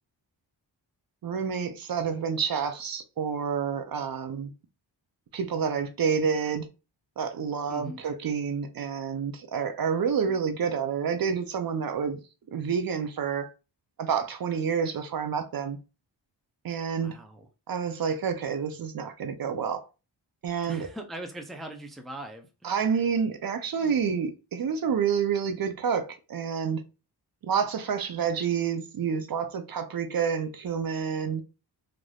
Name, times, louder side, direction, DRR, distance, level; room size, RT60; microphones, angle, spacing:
voice 1, 1.2-4.5 5.3-6.7 7.2-12.2 12.5-13.5 14.0-15.8 16.6-17.1 17.7-19.9 20.4-20.9 22.6-26.8 27.4-31.4, right 6 dB, 55° right, 0.5 m, -28 dB
voice 2, 7.7-8.0 17.0-17.5 20.7-22.7, right 1 dB, ahead, 0.4 m, -41 dB
3.3 x 2.5 x 2.3 m
wide cardioid pair, 80°, 44 cm